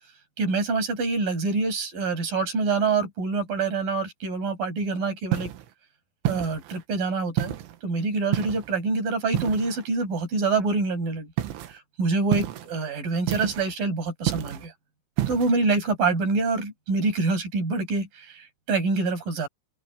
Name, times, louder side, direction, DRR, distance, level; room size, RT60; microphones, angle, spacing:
voice 1, 0.4-5.5 6.3-7.5 7.8-11.3 11.7-14.7 15.3-19.5, right 3 dB, 45° right, 7.8 m, -26 dB
sound 1, 5.3-5.7 6.3-6.8 7.4-7.8 8.3-8.8 9.3-9.9 11.4-11.7 12.3-12.7 13.3-13.7 14.3-14.7 15.2-15.5, right 14 dB, 90° right, 4.0 m, -29 dB
open air
omnidirectional pair, 5.4 m